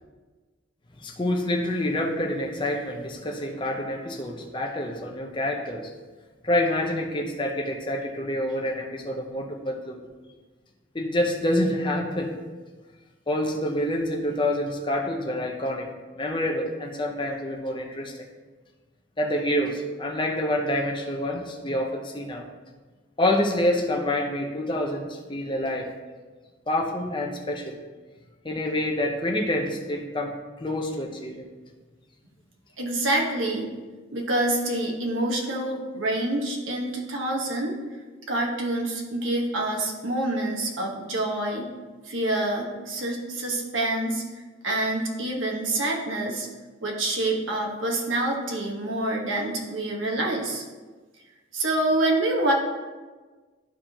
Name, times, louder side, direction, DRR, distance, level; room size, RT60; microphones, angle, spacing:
voice 1, 1.0-5.9 6.4-10.0 10.9-12.3 13.3-15.9 16.2-18.1 19.2-22.4 23.2-25.9 26.7-27.8 28.4-31.4, left 1 dB, 25° left, 1 dB, 0.7 m, -27 dB
voice 2, 32.8-33.7 34.1-37.8 38.3-41.7 42.1-44.2 44.6-46.5 46.8-50.6 51.5-52.5, right 1 dB, 80° right, -1 dB, 1.3 m, -26 dB
11.5 x 4.8 x 2.9 m, 1.3 s
head